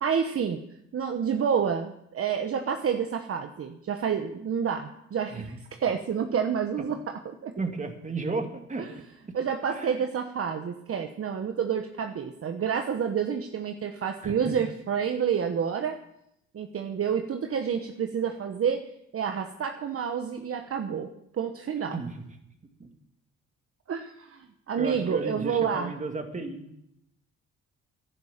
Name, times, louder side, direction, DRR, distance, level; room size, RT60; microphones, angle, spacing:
voice 1, 0.0-0.6 0.9-7.5 9.3-16.0 16.5-18.8 19.1-21.1 21.3-22.0 23.9-25.9, right 7 dB, 50° right, 5 dB, 1.1 m, -29 dB
voice 2, 7.6-8.9 9.7-10.0 14.2-14.6 21.9-22.3 22.8-22.9 24.8-26.6, right 3 dB, 25° right, 5 dB, 2.2 m, -33 dB
11.0 x 10.5 x 7.4 m, 0.78 s
cardioid pair, 90°, 30 cm